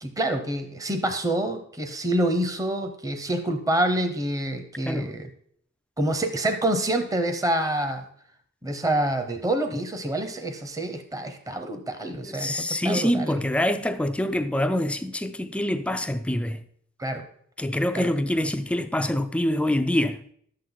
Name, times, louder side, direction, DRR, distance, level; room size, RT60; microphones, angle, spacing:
voice 1, 0.0-5.3 6.0-8.1 8.6-13.4 17.0-17.2 17.9-18.1, right 1 dB, 15° right, 0.9 m, -27 dB
voice 2, 12.2-16.6 17.6-20.2, left 1 dB, 5° left, 0.4 m, -25 dB
11.5 x 7.6 x 4.0 m
head